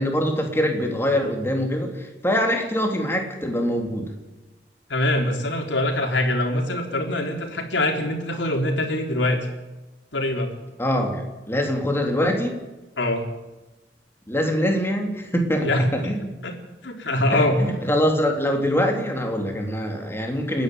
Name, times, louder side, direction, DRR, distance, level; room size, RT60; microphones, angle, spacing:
voice 1, 0.0-4.1 10.8-12.6 14.3-16.4 17.3-20.6, equal, 15° left, 2 dB, 3.5 m, -24 dB
voice 2, 4.9-9.5 10.1-10.5 13.0-13.2 15.6-15.9 16.4-16.5 16.8-17.6, left 1 dB, 75° left, 3 dB, 3.8 m, -23 dB
29.5 x 10.5 x 9.5 m, 1.1 s
head